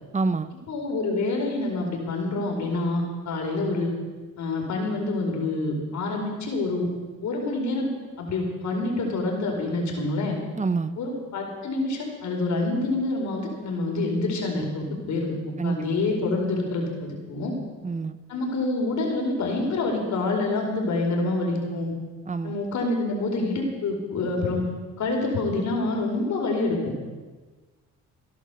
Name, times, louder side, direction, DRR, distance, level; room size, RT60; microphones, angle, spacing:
voice 1, 0.1-0.5 10.6-10.9 15.6-15.8 17.8-18.2 22.3-22.5, right 4 dB, 25° right, 13 dB, 0.9 m, -26 dB
voice 2, 0.7-3.9 4.4-6.9 7.2-7.9 8.2-10.4 11.0-15.3 15.6-17.5 18.3-21.9 22.4-24.6 25.0-26.9, left 2 dB, 65° left, 1 dB, 4.8 m, -27 dB
16.5 x 11.0 x 7.0 m, 1.3 s
cardioid pair, 90°, 30 cm